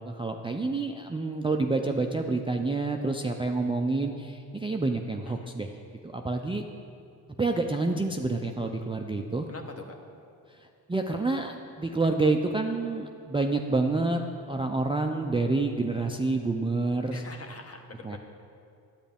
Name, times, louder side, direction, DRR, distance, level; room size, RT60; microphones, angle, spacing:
voice 1, 0.0-5.7 6.0-6.6 7.4-9.5 10.5-14.2 14.5-17.2 18.0-18.2, right 3 dB, 15° right, 3 dB, 0.4 m, -28 dB
voice 2, 9.5-10.0 17.1-18.2, left 3 dB, 35° left, 4 dB, 1.1 m, -44 dB
10.0 x 8.1 x 3.5 m, 2.5 s
cardioid pair, 60°, 42 cm